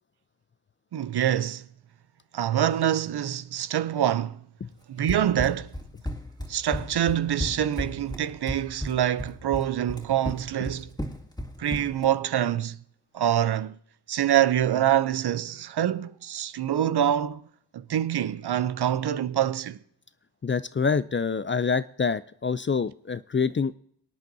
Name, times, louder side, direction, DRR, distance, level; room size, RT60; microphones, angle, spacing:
voice 1, 0.9-1.6 2.3-4.4 4.9-5.7 6.5-10.9 11.6-12.8 13.1-13.7 14.1-17.4 17.7-19.8, right 11 dB, 65° right, 0.6 m, -25 dB
Run, 5.1-12.1, equal, 10° left, 2.2 m, -34 dB
voice 2, 20.4-23.7, left 5 dB, 30° left, 0.4 m, -26 dB
24.0 x 9.0 x 2.7 m
cardioid pair, 55°, 42 cm